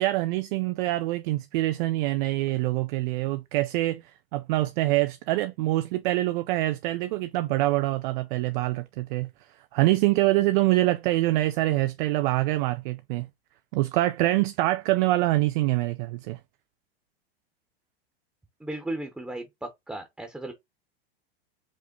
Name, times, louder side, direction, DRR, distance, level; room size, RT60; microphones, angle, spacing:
voice 1, 0.0-4.0 4.3-9.3 9.7-13.3 13.7-16.4, right 17 dB, 55° right, 0.4 m, -25 dB
voice 2, 18.6-20.5, right 1 dB, 5° right, 0.8 m, -35 dB
5.2 x 2.1 x 3.6 m
hypercardioid pair, 105°, 31 cm